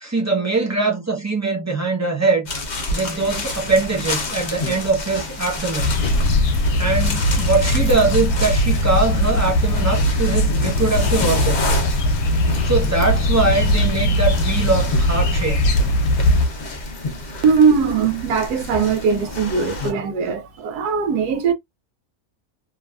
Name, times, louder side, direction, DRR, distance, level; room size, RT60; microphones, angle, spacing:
voice 1, 0.0-2.5 2.9-5.9 6.8-11.8 12.6-15.7, right 3 dB, 15° right, 0.7 m, -22 dB
sound 1, 2.5-19.9, left 2 dB, 55° left, 0.5 m, -29 dB
sound 2, 5.8-16.5, left 1 dB, 70° left, 1.1 m, -19 dB
voice 2, 17.4-21.5, right 5 dB, 90° right, 1.2 m, -19 dB
3.1 x 2.2 x 2.3 m
omnidirectional pair, 1.6 m